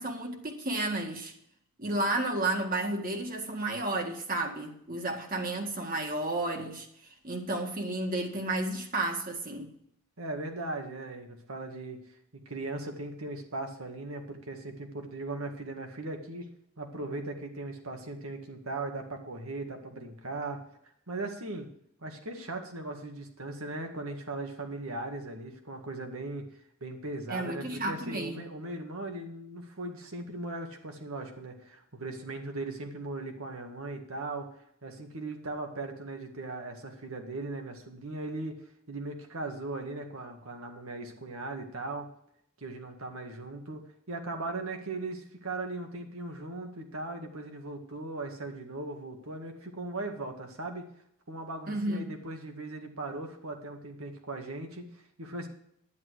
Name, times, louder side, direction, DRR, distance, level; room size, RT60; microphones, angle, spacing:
voice 1, 0.0-1.3 1.8-6.9 7.2-9.7 27.3-28.5 51.7-52.2, right 2 dB, 40° right, 1.8 m, -32 dB
voice 2, 10.2-12.0 12.3-16.5 16.8-20.6 21.1-21.7 22.0-26.4 26.8-34.5 34.8-42.1 42.6-50.8 51.3-55.5, right 2 dB, 80° right, 1.9 m, -38 dB
10.5 x 10.5 x 4.8 m
head